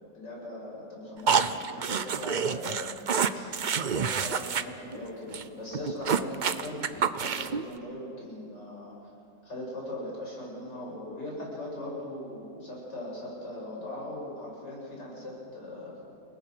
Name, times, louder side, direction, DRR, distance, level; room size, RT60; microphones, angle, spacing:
voice 1, 0.0-2.8 3.3-9.1 9.4-15.9, left 1 dB, 85° left, -4 dB, 8.1 m, -40 dB
sound 1, 1.3-4.6 4.9-5.0 5.3-5.4 5.7-7.6, right 6 dB, 65° right, 0.4 m, -28 dB
29.5 x 20.0 x 6.2 m, 2.5 s
omnidirectional pair, 1.8 m